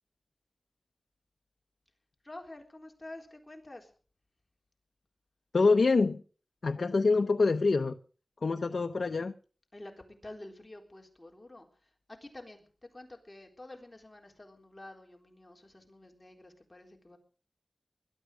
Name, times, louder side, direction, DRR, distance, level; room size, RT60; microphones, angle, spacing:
voice 1, 2.2-3.9 9.7-9.9 10.2-12.6 12.9-17.2, left 1 dB, 30° left, 2 dB, 3.8 m, -49 dB
voice 2, 5.5-6.2 6.6-8.0 8.4-9.3, left 3 dB, 80° left, 8 dB, 0.7 m, -25 dB
21.0 x 12.5 x 5.0 m, 0.40 s
wide cardioid pair, 55°, 0 cm